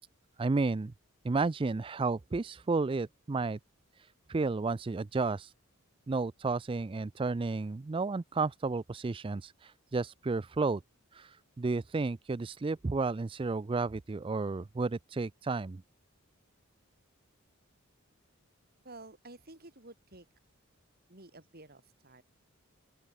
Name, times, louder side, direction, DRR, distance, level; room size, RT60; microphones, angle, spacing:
voice 1, 0.4-0.9 1.2-3.6 4.0-5.5 6.1-10.8 11.1-15.8, right 3 dB, 25° right, 0.4 m, -32 dB
voice 2, 18.8-20.3 21.1-22.2, right 2 dB, 45° right, 4.6 m, -51 dB
open air
head